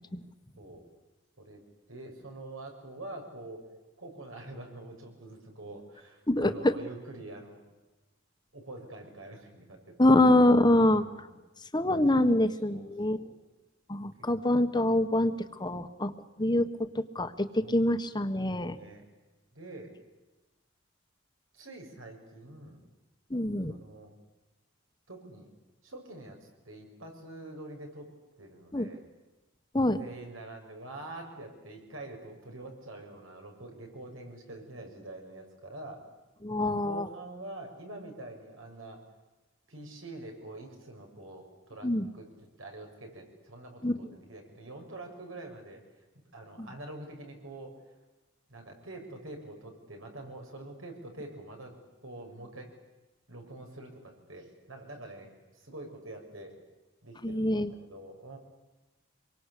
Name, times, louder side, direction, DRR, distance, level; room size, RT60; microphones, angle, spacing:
voice 1, 1.9-3.6 4.0-7.6 8.5-10.2 10.9-11.4 12.2-12.4 12.7-13.3 14.2-14.3 17.6-17.9 18.7-19.0 19.5-20.0 21.5-22.8 23.7-24.1 25.1-25.5 25.8-26.4 26.7-28.1 28.4-29.0 30.0-36.0 36.8-39.0 39.7-42.3 42.6-45.8 46.3-47.8 48.5-52.7 53.3-56.6 57.0-58.4, right 2 dB, 80° right, 3 dB, 7.0 m, -45 dB
voice 2, 6.3-6.7 10.0-11.0 11.7-13.2 13.9-16.1 16.4-18.8 23.3-23.7 28.7-28.9 29.7-30.0 36.4-37.1 41.8-42.1 43.8-43.9 46.6-46.7 57.2-57.7, left 1 dB, 20° left, 9 dB, 1.4 m, -25 dB
26.5 x 23.5 x 8.5 m, 1.1 s
head